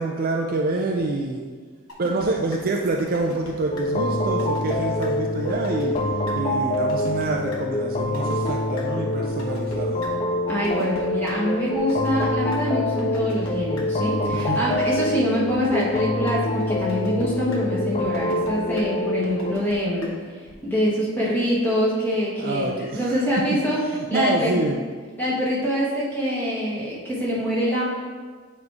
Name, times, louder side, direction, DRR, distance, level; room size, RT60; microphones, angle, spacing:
voice 1, 0.0-1.4 2.0-6.0 6.3-10.0 14.3-14.6 22.4-23.2 23.9-24.8, right 2 dB, 40° right, 1 dB, 0.4 m, -26 dB
sound 1, 1.9-2.3 2.5-2.6 3.0-3.5 3.8-3.9 4.2-4.8 5.0-5.1 5.5-6.0 6.3-6.4 6.7-7.3 7.5-7.6 8.0-8.5 8.8-8.9 9.2-9.8 10.0-10.1 10.5-11.3 11.7-12.6 13.0-13.5 13.8-13.9 14.2-14.7 15.0-15.1 15.5-16.0 16.3-16.4 16.7-17.2 17.5-17.6 18.0-18.5 18.8-18.9 19.2-19.7 20.0-20.1 20.5-20.6, left 1 dB, 70° left, 1.1 m, -40 dB
sound 2, 3.7-19.5, left 1 dB, 30° left, 0.3 m, -25 dB
voice 2, 10.5-20.1 20.6-23.8 24.1-24.6 25.2-27.8, equal, 10° left, -7 dB, 1.5 m, -24 dB
7.3 x 3.2 x 4.7 m, 1.5 s
head